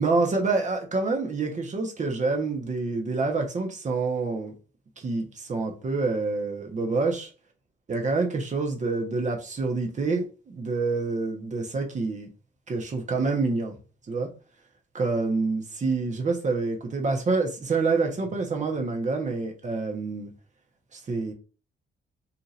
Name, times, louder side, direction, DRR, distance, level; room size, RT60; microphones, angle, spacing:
voice 1, 0.0-4.5 5.0-7.3 7.9-12.3 12.7-13.8 14.1-14.3 14.9-20.3 20.9-21.3, right 3 dB, 40° right, 1.0 m, -27 dB
2.7 x 2.5 x 4.1 m
cardioid pair, 90°, 20 cm